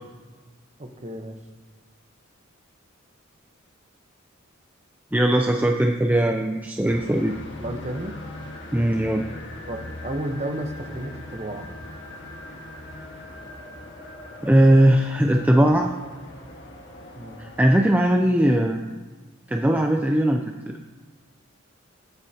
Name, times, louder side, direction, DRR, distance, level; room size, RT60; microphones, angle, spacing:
voice 1, 0.8-1.4 7.6-8.1 9.7-11.7 17.2-17.4, right 1 dB, 30° right, 4 dB, 0.9 m, -32 dB
voice 2, 5.1-7.4 8.7-9.2 14.4-15.9 17.4-18.8 19.5-20.4, right 1 dB, 10° right, 3 dB, 0.4 m, -19 dB
sound 1, 6.9-17.7, left 1 dB, 60° left, 1.5 m, -40 dB
19.5 x 7.8 x 2.8 m, 1.3 s
head